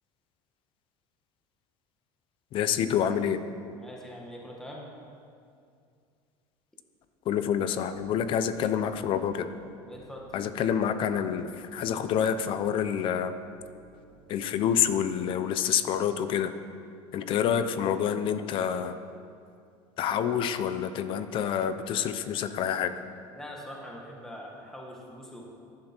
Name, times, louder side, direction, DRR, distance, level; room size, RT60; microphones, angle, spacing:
voice 1, 2.5-3.4 7.2-9.5 10.3-13.3 14.3-16.5 17.1-18.9 20.0-22.9, left 8 dB, 45° left, 11 dB, 0.7 m, -27 dB
voice 2, 3.8-4.9 9.9-10.3 23.3-25.5, equal, 5° left, -2 dB, 1.7 m, -43 dB
sound 1, 7.9-16.0, right 1 dB, 90° right, 2.4 m, -55 dB
15.5 x 11.5 x 4.5 m, 2.4 s
cardioid pair, 150°, 12 cm